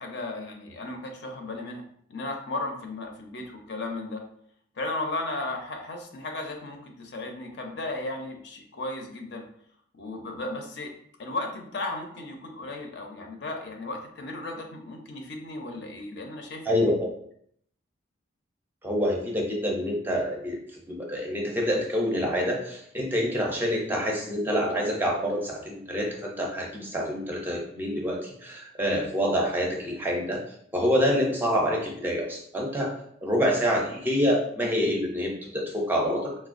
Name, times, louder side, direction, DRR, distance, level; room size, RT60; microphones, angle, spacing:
voice 1, 0.0-1.8 2.1-4.2 4.8-9.5 9.9-10.9 11.2-16.9, left 2 dB, 65° left, 3 dB, 0.5 m, -35 dB
voice 2, 16.7-17.0 18.8-20.6 20.9-30.4 30.7-36.3, equal, 10° right, 0 dB, 0.4 m, -27 dB
4.0 x 2.2 x 2.5 m, 0.66 s
head